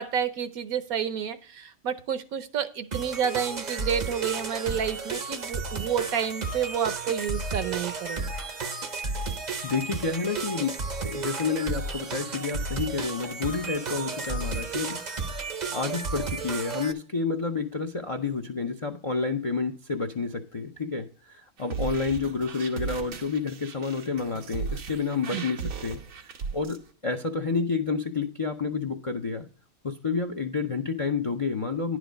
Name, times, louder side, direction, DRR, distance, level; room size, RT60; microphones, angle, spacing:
voice 1, 0.0-8.3 25.3-25.5, right 8 dB, 75° right, 11 dB, 1.2 m, -30 dB
sound 1, 2.9-16.9, right 4 dB, 40° right, 0.6 m, -33 dB
voice 2, 9.6-15.0 15.7-26.0 26.5-26.8 27.0-29.5 29.8-32.0, left 4 dB, 40° left, 6 dB, 0.4 m, -29 dB
sound 2, 21.6-26.8, right 5 dB, 90° right, 1.5 m, -36 dB
10.5 x 4.9 x 5.1 m, 0.44 s
omnidirectional pair, 1.5 m